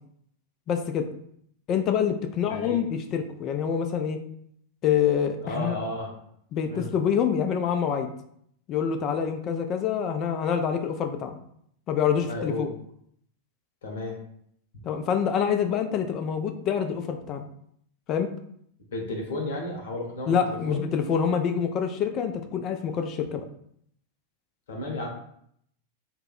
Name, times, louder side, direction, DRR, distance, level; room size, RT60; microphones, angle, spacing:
voice 1, 0.7-1.1 1.7-4.2 4.8-5.8 6.5-8.1 8.7-11.3 11.9-12.7 14.8-17.4 18.1-18.3 20.3-23.4, left 7 dB, 35° left, 6 dB, 0.3 m, -26 dB
voice 2, 2.5-2.8 5.4-6.1 6.6-6.9 12.2-12.7 13.8-14.1 14.7-14.8 18.9-20.8 24.7-25.1, left 2 dB, 60° left, 0 dB, 0.8 m, -33 dB
2.6 x 2.0 x 3.7 m, 0.69 s
figure-of-eight pair, 90°, 0 cm